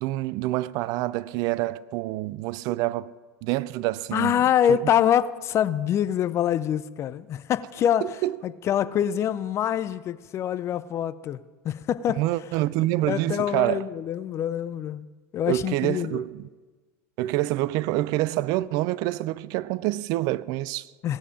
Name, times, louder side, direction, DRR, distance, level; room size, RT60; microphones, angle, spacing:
voice 1, 0.0-3.1 3.4-4.4 4.7-4.8 8.0-8.4 12.2-13.9 15.5-16.5 17.2-20.9, right 16 dB, 55° right, 0.4 m, -27 dB
voice 2, 4.1-8.0 8.4-12.2 13.0-15.1 15.3-16.2 21.0-21.2, left 10 dB, 40° left, 0.6 m, -25 dB
17.0 x 7.2 x 5.1 m
hypercardioid pair, 85°, 7 cm